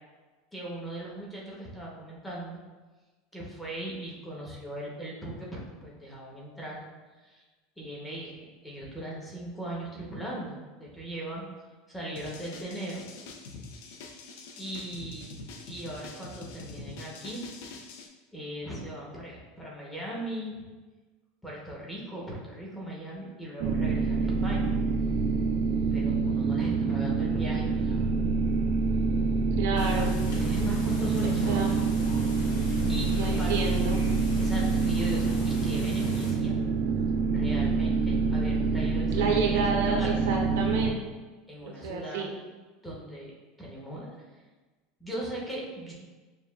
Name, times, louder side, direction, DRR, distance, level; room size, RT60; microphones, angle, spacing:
voice 1, 0.5-2.6 3.3-6.8 7.2-7.4 7.8-11.5 11.9-13.0 14.6-15.3 15.7-17.4 18.3-20.7 21.4-24.8 25.9-28.0 30.3-31.9 32.5-33.6 34.4-36.6 37.3-40.3 41.5-42.3 42.8-43.3 43.6-44.1 45.0-45.9, right 1 dB, 5° left, -5 dB, 0.7 m, -38 dB
sound 1, 12.2-18.1, left 3 dB, 65° left, 0.4 m, -45 dB
sound 2, 23.6-40.9, right 4 dB, 50° right, 0.3 m, -26 dB
voice 2, 29.5-30.1 31.2-31.7 33.1-34.0 39.1-41.0 41.6-42.3, right 4 dB, 85° right, 1 dB, 0.7 m, -30 dB
sound 3, 29.8-36.3, left 1 dB, 85° left, 0.9 m, -38 dB
6.6 x 2.3 x 2.3 m, 1.3 s
supercardioid pair, 170°, 0 cm